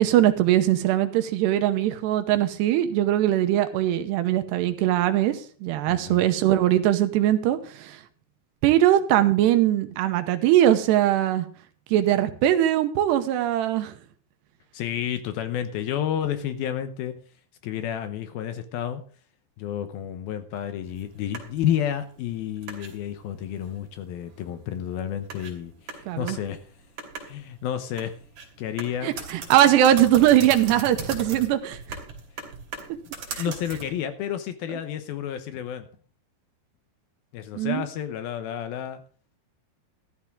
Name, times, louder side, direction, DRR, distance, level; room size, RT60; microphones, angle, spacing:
voice 1, 0.0-8.0 8.6-11.5 11.9-13.9 26.1-26.4 29.0-32.0 33.3-33.5 37.5-37.8, right 12 dB, 85° right, 9 dB, 3.0 m, -21 dB
voice 2, 5.9-6.2 14.7-17.1 17.6-19.0 19.6-26.6 27.2-28.2 28.6-29.1 33.4-35.9 37.3-39.0, left 10 dB, 75° left, 9 dB, 2.5 m, -30 dB
sound 1, 20.8-34.0, right 4 dB, 45° right, 3.8 m, -40 dB
13.5 x 13.0 x 3.6 m, 0.43 s
omnidirectional pair, 4.8 m